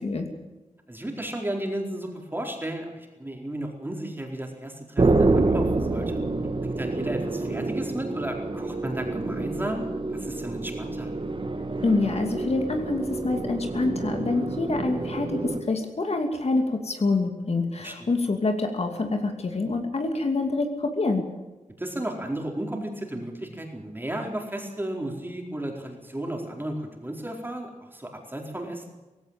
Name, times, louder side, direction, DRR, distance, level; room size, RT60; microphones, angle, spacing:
voice 1, 0.9-6.2 6.6-11.1 17.8-18.1 21.8-28.9, right 1 dB, 15° right, 2 dB, 4.4 m, -34 dB
sound 1, 5.0-15.6, right 3 dB, 40° right, 2.1 m, -27 dB
voice 2, 11.8-21.2, left 3 dB, 55° left, 5 dB, 2.7 m, -26 dB
18.0 x 16.5 x 8.9 m, 1.1 s
wide cardioid pair, 105°, 13 cm